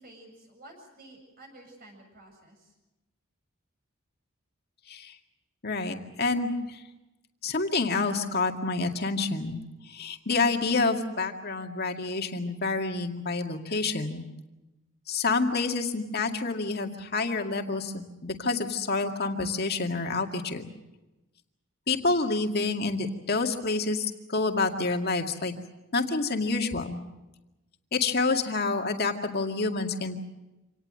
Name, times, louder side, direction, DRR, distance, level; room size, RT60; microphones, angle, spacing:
voice 1, 0.0-2.7, right 1 dB, 45° right, 2 dB, 7.5 m, -51 dB
voice 2, 5.6-6.8 7.4-9.6 9.8-14.3 15.1-20.7 21.9-25.5 25.9-27.0 27.9-30.2, left 3 dB, 50° left, 4 dB, 2.1 m, -28 dB
26.5 x 18.5 x 7.7 m, 1.0 s
head